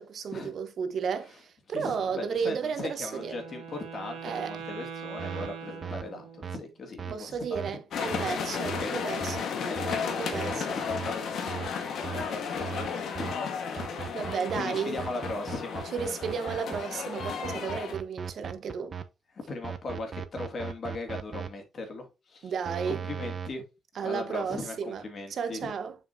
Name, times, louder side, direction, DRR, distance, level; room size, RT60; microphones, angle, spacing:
voice 1, 0.0-3.4 4.2-4.6 7.1-9.5 9.9-10.8 14.1-15.0 15.9-19.0 22.4-23.0 23.9-25.0 25.3-26.0, right 6 dB, 60° right, 1.3 m, -33 dB
voice 2, 1.7-7.8 8.0-8.4 8.8-9.2 9.6-10.2 10.5-11.6 12.1-13.3 14.5-15.8 19.5-22.5 22.9-23.6 24.0-25.7, left 2 dB, 45° left, 2.6 m, -38 dB
Wind instrument woodwind instrument, 3.0-6.6, right 6 dB, 80° right, 1.8 m, -42 dB
sound 1, 5.2-5.5 5.8-6.0 6.4-6.6 7.0-7.1 7.5-7.7 8.1-8.3 8.6-8.8 9.2-9.4 9.8-10.0 10.3-10.5 10.9-11.1 11.5-11.7 12.0-12.2 12.6-12.9 13.1-13.3 13.8-14.6 15.0-16.8 17.2-19.0 19.6-21.5 22.6-23.5, right 7 dB, 40° right, 0.9 m, -37 dB
sound 2, 7.9-17.9, left 6 dB, 70° left, 1.6 m, -34 dB
7.1 x 5.7 x 2.8 m
cardioid pair, 90°, 0 cm